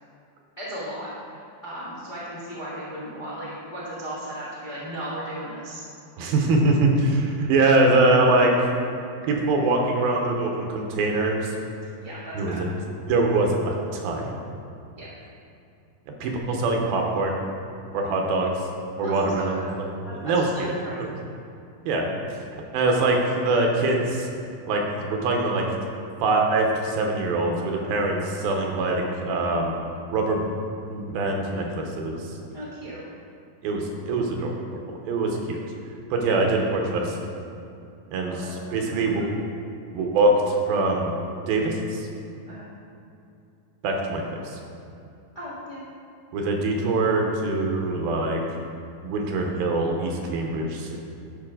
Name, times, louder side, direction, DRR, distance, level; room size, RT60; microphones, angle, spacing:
voice 1, 0.6-5.8 12.0-12.6 15.0-15.1 19.0-19.7 20.0-21.2 32.5-33.0 38.2-39.5 42.5-42.7 45.3-45.8, equal, 45° left, -10 dB, 0.6 m, -36 dB
voice 2, 6.2-8.7 9.2-11.6 12.3-12.5 13.0-14.3 16.2-17.4 17.9-18.6 19.0-19.6 20.2-21.1 21.9-22.1 22.7-24.3 24.7-25.7 26.2-29.9 30.1-30.4 30.9-32.3 33.6-35.6 36.1-37.2 38.1-39.3 39.9-41.1 41.5-42.1 43.8-44.6 46.3-48.4 49.0-51.0, right 2 dB, 85° right, 1 dB, 2.8 m, -23 dB
11.5 x 5.6 x 3.8 m, 2.6 s
omnidirectional pair, 4.3 m